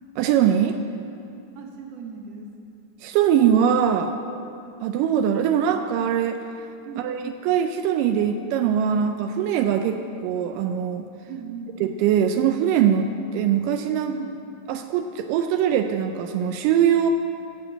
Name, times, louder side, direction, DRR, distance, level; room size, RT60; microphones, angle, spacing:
voice 1, 0.2-0.8 3.0-4.2 4.8-6.4 7.0-11.0 11.8-14.2 14.7-17.1, right 9 dB, 85° right, 6 dB, 2.2 m, -22 dB
voice 2, 1.6-2.5 6.9-7.3 11.3-11.8 14.1-14.4, right 6 dB, 60° right, 1 dB, 2.0 m, -38 dB
15.5 x 5.2 x 7.5 m, 2.6 s
omnidirectional pair, 3.8 m